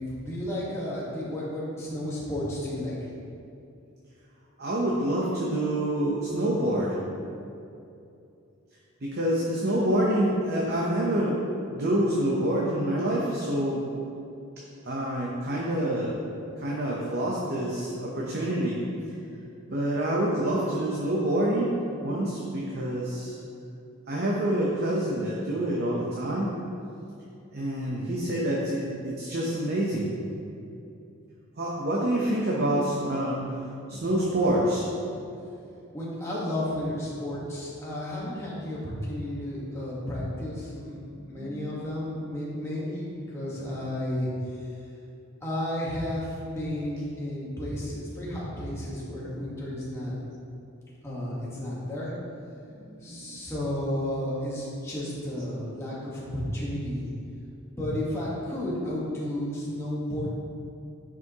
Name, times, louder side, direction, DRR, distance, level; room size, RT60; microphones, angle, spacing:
voice 1, 0.0-3.1 35.9-44.7 45.4-50.1 51.0-52.1 53.0-57.1 57.8-60.3, left 1 dB, 10° left, -7 dB, 1.3 m, -32 dB
voice 2, 4.6-6.9 9.0-11.4 11.7-13.8 14.8-16.2 16.6-18.8 19.7-21.7 22.0-23.4 24.1-26.5 27.5-30.1 31.6-33.6 33.9-34.9 41.4-41.9 52.8-53.4, right 1 dB, 45° right, -4 dB, 0.8 m, -27 dB
9.5 x 5.0 x 2.9 m, 2.6 s
head